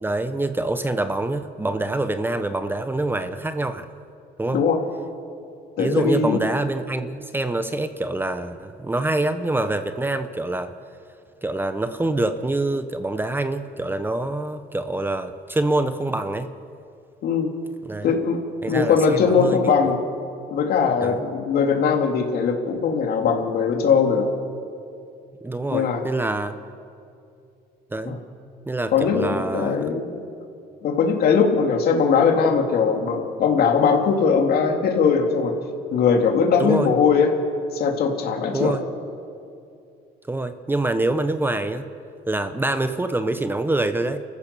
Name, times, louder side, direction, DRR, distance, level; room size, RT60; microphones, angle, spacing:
voice 1, 0.0-3.9 4.4-4.6 5.8-10.7 11.4-16.5 17.8-18.1 18.6-19.7 21.0-21.2 25.4-26.6 27.9-28.2 28.7-29.9 36.6-36.9 38.5-38.8 40.3-41.9 42.3-44.2, right 2 dB, 10° right, 9 dB, 1.0 m, -25 dB
voice 2, 5.8-6.4 17.2-17.5 18.0-18.4 18.7-20.0 20.5-24.3 25.7-26.0 28.0-28.2 28.9-30.2 30.8-35.5 35.9-37.3 37.7-38.7, left 6 dB, 65° left, 3 dB, 3.1 m, -20 dB
29.5 x 15.0 x 7.0 m, 2.5 s
cardioid pair, 110°, 17 cm